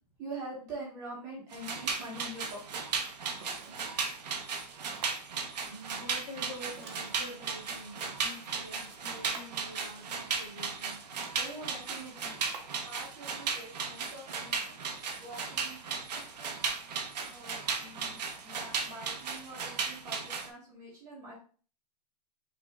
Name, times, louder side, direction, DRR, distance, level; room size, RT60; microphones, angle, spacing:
voice 1, 0.2-2.6 11.3-12.4 12.8-14.8 15.2-15.8 16.1-16.4 17.3-21.4, right 2 dB, 15° right, -4 dB, 0.9 m, -45 dB
sound 1, 1.5-20.5, right 5 dB, 85° right, 1.0 m, -36 dB
sound 2, 3.3-3.9 4.9-5.3 6.8-7.8 9.0-9.7 10.6-10.7 11.1-11.5 12.4-12.8, right 4 dB, 40° right, 0.8 m, -49 dB
voice 2, 5.6-11.0, equal, 55° left, -3 dB, 1.9 m, -47 dB
5.5 x 2.4 x 3.4 m, 0.40 s
hypercardioid pair, 175°, 21 cm